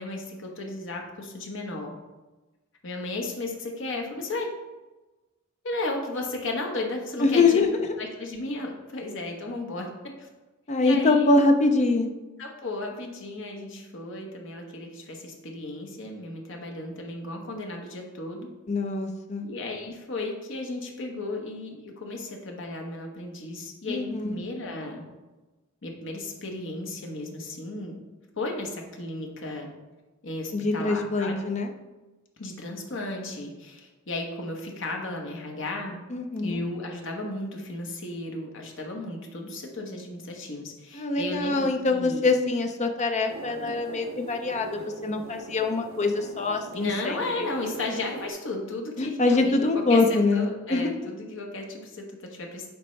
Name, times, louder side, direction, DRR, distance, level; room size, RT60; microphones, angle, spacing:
voice 1, 0.0-1.9 2.8-4.5 5.6-7.7 8.0-9.9 10.2-10.3 10.8-11.3 12.4-18.5 19.4-25.0 25.8-27.9 28.4-29.7 30.2-31.4 32.4-36.0 36.4-42.2 46.7-52.7, left 2 dB, 65° left, 1 dB, 1.1 m, -34 dB
voice 2, 7.2-8.0 10.7-12.1 18.7-19.5 23.9-24.4 30.5-31.7 36.1-36.6 40.9-47.2 49.0-51.0, left 3 dB, 35° left, 5 dB, 0.5 m, -24 dB
sound 1, 43.3-48.3, right 4 dB, 75° right, 0.4 m, -41 dB
8.3 x 4.4 x 3.2 m, 1.1 s
head